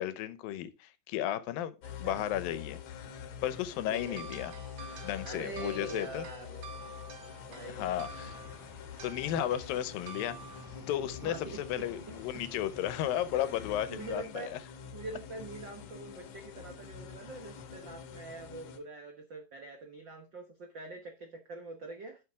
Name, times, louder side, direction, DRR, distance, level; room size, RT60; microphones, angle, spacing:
voice 1, 0.0-2.8 3.4-4.5 5.0-6.3 7.7-8.4 9.0-10.4 10.9-11.4 11.7-14.6, left 11 dB, 80° left, 2.5 m, -34 dB
sound 1, 1.8-18.8, left 7 dB, 65° left, 2.2 m, -46 dB
voice 2, 2.0-2.3 3.9-4.2 5.2-6.6 7.5-7.9 11.2-11.9 12.3-12.4 13.9-22.2, right 3 dB, 85° right, 1.0 m, -44 dB
sound 2, 3.9-11.8, right 7 dB, 65° right, 1.7 m, -50 dB
sound 3, 8.0-14.2, left 3 dB, 5° left, 3.9 m, -54 dB
11.5 x 6.6 x 3.6 m
omnidirectional pair, 4.1 m